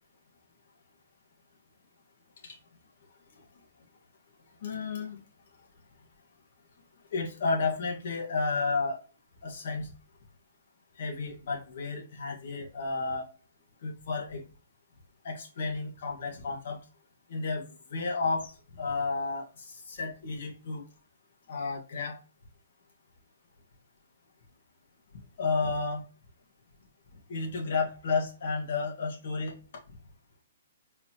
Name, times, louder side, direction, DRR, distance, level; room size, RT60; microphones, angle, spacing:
voice 1, 4.6-5.2 7.1-9.0 9.4-9.9 11.0-13.3 13.8-14.4 15.2-16.8 17.3-20.8 21.5-22.2 25.4-26.0 27.3-29.5, left 4 dB, 60° left, -1 dB, 1.6 m, -32 dB
3.9 x 2.9 x 3.1 m, 0.37 s
hypercardioid pair, 130°, 0 cm